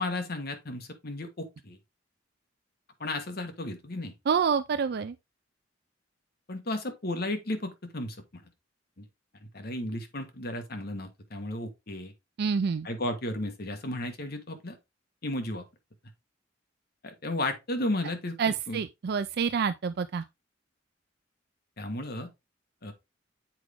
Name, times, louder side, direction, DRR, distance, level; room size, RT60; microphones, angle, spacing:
voice 1, 0.0-1.8 3.0-4.1 6.5-8.4 9.0-9.1 9.5-12.1 12.8-14.7 15.2-15.6 17.0-18.8 21.8-22.3 22.8-22.9, left 1 dB, 55° left, 1.4 m, -34 dB
voice 2, 4.3-5.1 12.4-12.9 18.4-20.2, right 6 dB, 55° right, 0.4 m, -27 dB
7.6 x 4.9 x 3.5 m
head